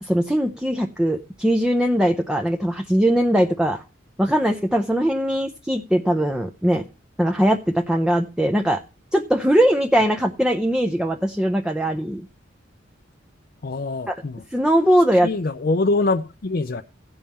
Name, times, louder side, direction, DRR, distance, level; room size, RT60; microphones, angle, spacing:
voice 1, 0.0-3.8 4.2-6.8 7.2-8.8 9.1-12.2 14.1-14.2 14.5-15.3, equal, 5° right, 0.6 m, -20 dB
voice 2, 13.6-14.4 15.2-16.8, left 3 dB, 50° left, 0.5 m, -24 dB
16.5 x 5.5 x 4.2 m
head